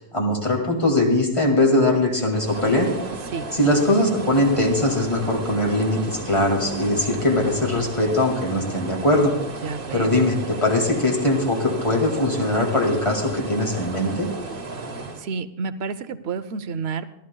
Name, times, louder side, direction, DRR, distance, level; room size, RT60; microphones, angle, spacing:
voice 1, 0.0-2.9 3.5-9.3 9.9-14.3, left 1 dB, 30° left, 0 dB, 2.3 m, -21 dB
sound 1, 2.3-15.3, right 3 dB, 60° right, 1.4 m, -34 dB
voice 2, 9.6-10.2 15.2-17.2, right 5 dB, 80° right, 13 dB, 0.9 m, -30 dB
25.0 x 13.5 x 2.3 m, 0.86 s
omnidirectional pair, 1.1 m